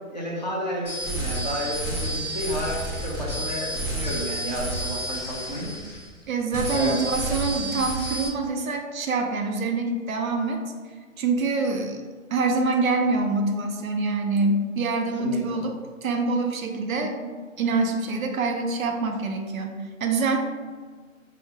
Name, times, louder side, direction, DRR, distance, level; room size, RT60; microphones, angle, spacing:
voice 1, 0.1-6.0 6.7-7.0 15.2-15.6, equal, 35° left, -5 dB, 0.4 m, -31 dB
sound 1, 0.8-6.2 6.5-8.3, right 1 dB, 10° right, 0.8 m, -30 dB
voice 2, 6.3-10.6 11.2-12.0 12.3-20.4, right 3 dB, 75° right, 4 dB, 0.6 m, -25 dB
3.1 x 2.2 x 3.2 m, 1.5 s
hypercardioid pair, 160°, 41 cm